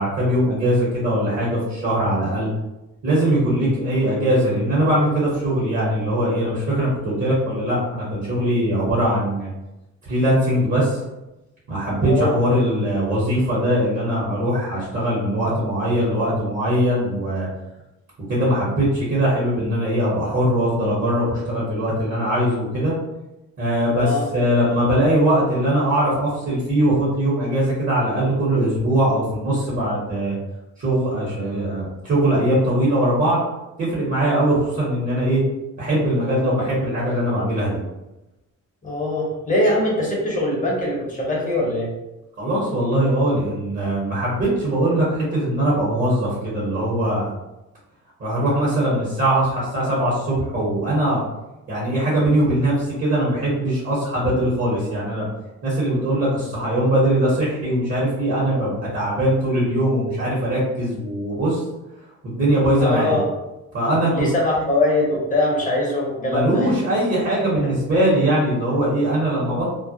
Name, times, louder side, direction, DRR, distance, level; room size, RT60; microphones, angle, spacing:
voice 1, 0.0-2.5 3.0-9.5 10.1-11.0 11.7-17.5 18.3-22.9 23.6-30.3 30.8-33.4 33.8-35.4 35.8-37.8 42.4-47.3 48.2-51.2 51.7-55.3 55.6-61.6 62.2-63.2 63.7-64.2 66.2-69.6, right 1 dB, 40° right, -7 dB, 0.9 m, -21 dB
voice 2, 12.0-12.4 24.0-24.3 38.8-41.9 62.8-63.3 64.1-66.7, left 1 dB, 25° left, -4 dB, 0.9 m, -22 dB
2.2 x 2.0 x 2.6 m, 0.98 s
cardioid pair, 110°, 31 cm